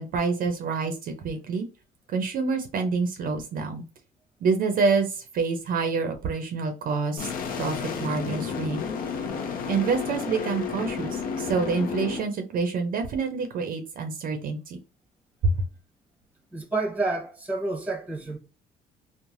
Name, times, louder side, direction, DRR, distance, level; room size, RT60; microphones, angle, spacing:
voice 1, 0.0-1.7 2.1-3.8 4.4-7.3 7.6-8.8 9.7-14.8 15.4-15.6, right 4 dB, 55° right, 0.5 m, -27 dB
sound 1, 7.2-12.2, left 6 dB, 55° left, 0.6 m, -31 dB
voice 2, 16.5-18.4, right 3 dB, 10° right, 0.9 m, -29 dB
3.1 x 2.1 x 2.5 m
cardioid pair, 110°, 17 cm